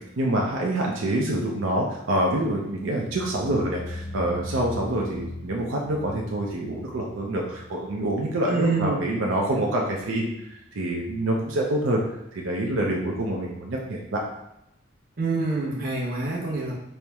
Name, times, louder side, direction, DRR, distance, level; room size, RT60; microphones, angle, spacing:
voice 1, 0.2-10.3 10.7-12.0 12.3-14.2, right 1 dB, 80° right, -1 dB, 0.5 m, -26 dB
sound 1, 2.8-9.9 10.2-10.6 11.0-11.1, left 1 dB, 30° left, 0.6 m, -40 dB
voice 2, 8.5-9.0 9.5-9.6 15.2-16.7, right 3 dB, 45° right, -4 dB, 0.8 m, -26 dB
4.3 x 2.1 x 3.4 m, 0.83 s
head